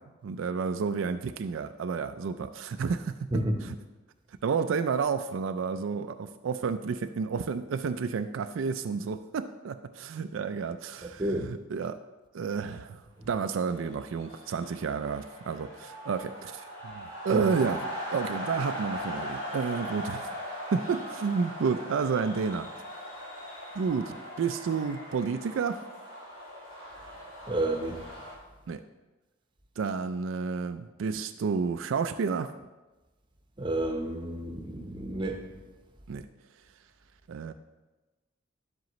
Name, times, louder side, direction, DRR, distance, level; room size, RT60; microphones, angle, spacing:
voice 1, 0.2-3.3 3.6-3.8 4.4-12.0 12.3-20.3 20.7-22.7 23.8-25.8 28.7-28.8 29.8-32.5 36.1-36.2 37.3-37.5, right 5 dB, 75° right, 8 dB, 0.4 m, -31 dB
voice 2, 3.3-3.7 11.2-11.5 17.3-17.4 27.5-28.0 33.6-35.4, right 1 dB, 25° right, 3 dB, 0.8 m, -30 dB
sound 1, 13.5-28.3, equal, 90° left, 2.6 m, -40 dB
10.5 x 7.6 x 3.1 m, 1.1 s
head